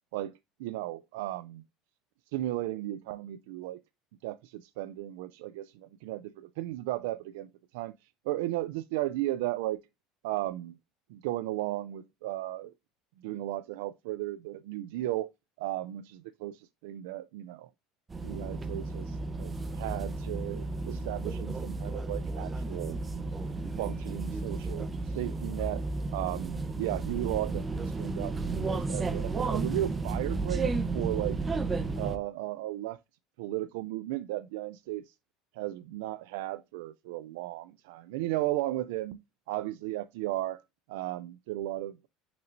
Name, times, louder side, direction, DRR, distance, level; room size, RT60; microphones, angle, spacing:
voice 1, 0.6-1.6 2.3-3.8 4.2-7.9 8.3-9.8 10.2-10.8 11.1-12.7 13.2-15.3 15.6-17.7 18.2-23.0 23.8-25.8 26.1-31.4 32.0-33.0 33.4-35.1 35.5-39.2 39.5-40.6 40.9-42.1, right 15 dB, 85° right, 0.4 m, -35 dB
sound 1, 18.1-32.2, right 3 dB, 20° right, 0.8 m, -33 dB
6.1 x 5.9 x 2.6 m
cardioid pair, 140°, 0 cm